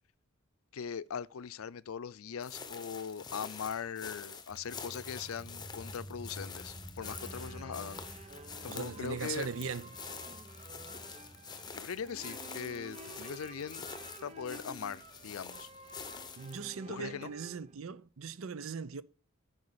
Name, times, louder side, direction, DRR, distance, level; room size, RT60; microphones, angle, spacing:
voice 1, 0.7-8.0 8.6-9.5 11.7-13.9 14.2-15.7 16.9-17.3, left 7 dB, 85° left, 0.5 m, -40 dB
sound 1, 2.4-16.6, left 5 dB, 20° left, 0.9 m, -47 dB
sound 2, 4.5-15.6, equal, ahead, 3.6 m, -52 dB
sound 3, 7.0-17.8, right 2 dB, 30° right, 0.8 m, -51 dB
voice 2, 8.7-9.9 16.4-19.0, right 5 dB, 75° right, 0.6 m, -39 dB
9.6 x 5.5 x 6.8 m
head